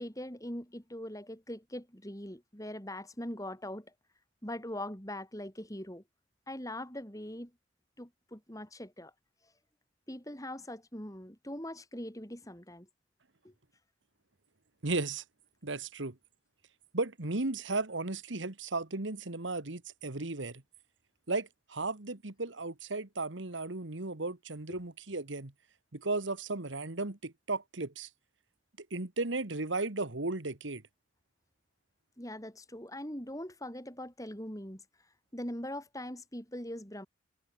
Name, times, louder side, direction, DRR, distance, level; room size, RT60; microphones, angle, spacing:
voice 1, 0.0-3.9 4.4-6.0 6.5-7.5 8.0-9.1 10.1-12.9 13.4-13.5 24.7-24.8 32.2-34.8 35.3-37.1, left 1 dB, 20° left, 6.7 m, -41 dB
voice 2, 14.8-15.2 15.6-16.2 16.9-20.6 21.3-25.5 25.9-28.1 28.9-30.8, right 3 dB, 80° right, 1.8 m, -35 dB
head